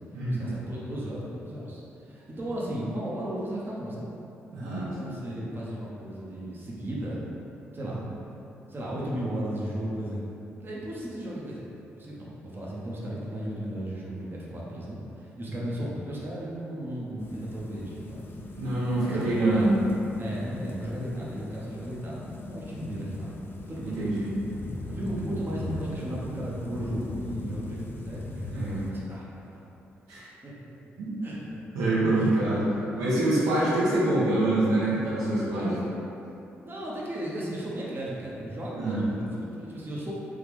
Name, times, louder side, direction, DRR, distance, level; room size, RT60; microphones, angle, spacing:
voice 1, 0.3-4.1 4.6-7.2 7.7-8.0 8.7-10.2 10.5-11.7 11.9-18.3 19.0-19.3 19.5-19.7 20.2-23.3 23.7-24.4 24.9-28.5 28.9-29.7 30.4-30.6 31.2-31.6 32.1-32.3 36.6-40.1, right 1 dB, 35° right, -6 dB, 0.7 m, -35 dB
voice 2, 4.5-4.9 7.8-8.0 15.5-15.6 18.5-19.7 22.8-22.9 23.8-24.3 28.5-28.8 30.1-30.3 31.0-31.1 31.7-32.7 32.9-35.8 38.7-39.0, right 2 dB, 75° right, -9 dB, 0.9 m, -25 dB
sound 1, 17.2-28.9, left 2 dB, 40° left, 0.4 m, -39 dB
3.3 x 2.4 x 3.5 m, 2.8 s
hypercardioid pair, 45°, 6 cm